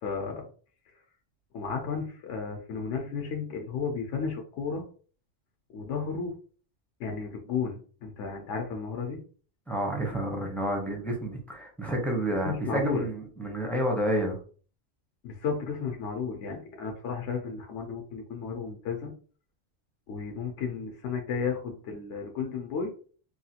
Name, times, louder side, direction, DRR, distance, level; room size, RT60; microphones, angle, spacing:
voice 1, 0.0-0.5 1.5-4.8 5.7-6.4 7.0-9.2 12.4-13.1 15.2-19.1 20.1-22.9, left 5 dB, 75° left, 2 dB, 0.9 m, -33 dB
voice 2, 9.7-14.4, right 1 dB, ahead, 1 dB, 0.5 m, -29 dB
3.0 x 2.4 x 2.7 m, 0.41 s
omnidirectional pair, 1.3 m